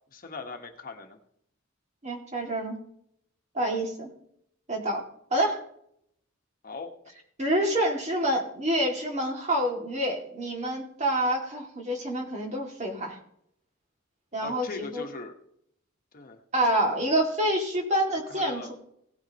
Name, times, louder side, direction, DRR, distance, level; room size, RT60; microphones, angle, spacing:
voice 1, 0.1-1.2 6.6-6.9 14.4-15.3 16.1-16.4 18.3-18.7, left 3 dB, 45° left, 4 dB, 1.3 m, -40 dB
voice 2, 2.0-2.8 3.5-4.1 4.7-5.0 5.3-5.6 7.4-13.2 14.3-15.0 16.5-18.7, right 1 dB, 35° right, 1 dB, 2.3 m, -27 dB
17.0 x 9.3 x 2.9 m, 0.70 s
head